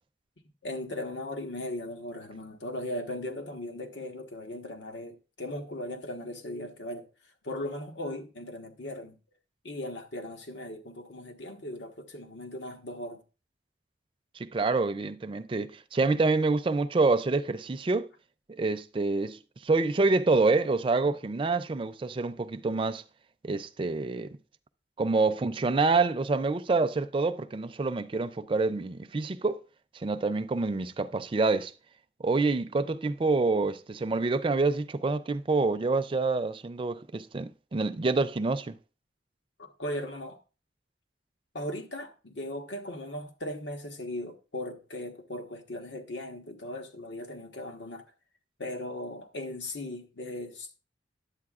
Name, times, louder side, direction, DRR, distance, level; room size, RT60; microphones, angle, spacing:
voice 1, 0.6-7.0 7.4-9.2 9.6-13.2 39.6-40.4 41.5-48.0 48.6-50.8, left 1 dB, 85° left, 1.3 m, -38 dB
voice 2, 14.4-18.1 18.5-23.0 23.4-24.3 25.0-29.6 29.9-31.7 32.2-38.8, right 3 dB, 30° right, 0.4 m, -27 dB
10.5 x 8.1 x 2.4 m
head